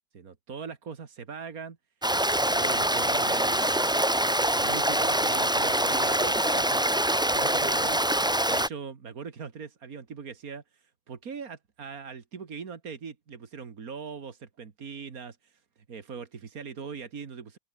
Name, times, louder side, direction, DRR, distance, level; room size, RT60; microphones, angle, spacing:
voice 1, 0.1-1.8 2.4-4.0 4.5-15.6 15.9-17.6, right 6 dB, 85° right, 2.4 m, -41 dB
Stream, 2.0-8.7, right 1 dB, 5° right, 0.3 m, -25 dB
open air
omnidirectional pair, 1.5 m